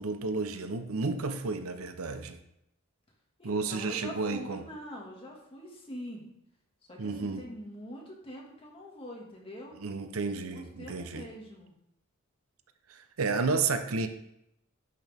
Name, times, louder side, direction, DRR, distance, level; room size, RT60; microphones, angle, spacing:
voice 1, 0.0-2.4 3.4-4.6 7.0-7.4 9.8-11.3 12.9-14.1, right 4 dB, 75° right, 8 dB, 0.7 m, -32 dB
voice 2, 3.4-6.3 6.9-9.8 10.5-11.7, equal, 25° left, -1 dB, 1.9 m, -44 dB
11.0 x 5.9 x 3.5 m, 0.77 s
head